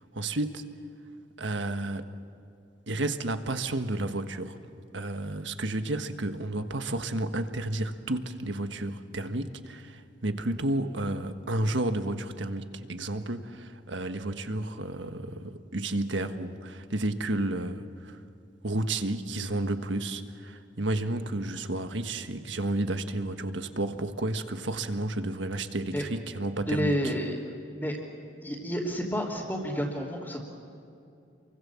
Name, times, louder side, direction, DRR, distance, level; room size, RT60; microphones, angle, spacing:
voice 1, 0.1-0.7 1.4-2.1 2.9-4.6 4.9-18.2 18.6-27.1, right 2 dB, 75° right, 8 dB, 1.5 m, -31 dB
voice 2, 26.7-27.3 27.7-28.0 28.4-30.4, equal, 10° left, -8 dB, 3.1 m, -30 dB
28.5 x 23.5 x 7.2 m, 2.6 s
head